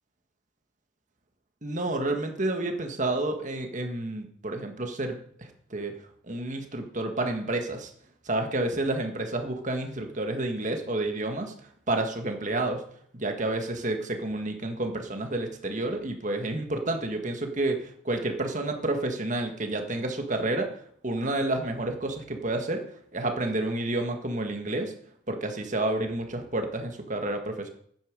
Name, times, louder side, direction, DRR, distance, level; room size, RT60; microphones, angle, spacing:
voice 1, 1.6-5.9 6.3-7.9 8.2-11.5 11.9-12.8 13.2-20.7 21.0-22.8 23.1-24.9 25.3-27.7, right 2 dB, 40° right, 4 dB, 1.6 m, -30 dB
10.5 x 9.6 x 5.3 m, 0.64 s
head